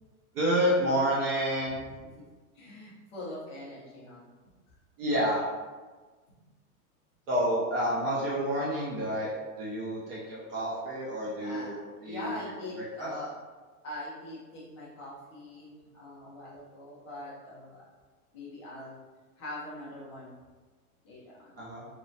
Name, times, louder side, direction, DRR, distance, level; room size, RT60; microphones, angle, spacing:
voice 1, 0.3-1.8 5.0-5.4 7.3-9.3 9.6-11.8 12.0-12.3 12.8-13.1 21.6-21.9, equal, 40° right, -6 dB, 0.5 m, -29 dB
voice 2, 2.5-4.3 6.3-6.4 11.4-13.3 13.8-17.8 18.3-19.0 19.4-20.4 21.0-21.6, left 1 dB, 20° left, -7 dB, 0.3 m, -42 dB
2.9 x 2.1 x 2.6 m, 1.3 s
supercardioid pair, 150°, 44 cm